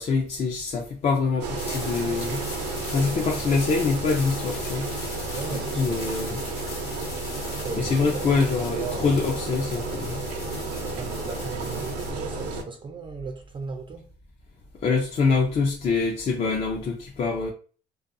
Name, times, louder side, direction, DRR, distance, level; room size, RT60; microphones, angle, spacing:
voice 1, 0.0-2.4 2.9-4.9 5.5-6.4 7.8-10.2 14.8-17.5, left 4 dB, 40° left, 0.5 m, -25 dB
Engine, 1.4-12.6, right 3 dB, 90° right, 0.6 m, -32 dB
sound 1, 1.6-12.1, left 4 dB, 70° left, 1.1 m, -40 dB
voice 2, 5.3-6.4 7.4-9.4 10.8-14.1, right 5 dB, 30° right, 0.4 m, -37 dB
2.4 x 2.3 x 2.6 m
cardioid pair, 110°, 17 cm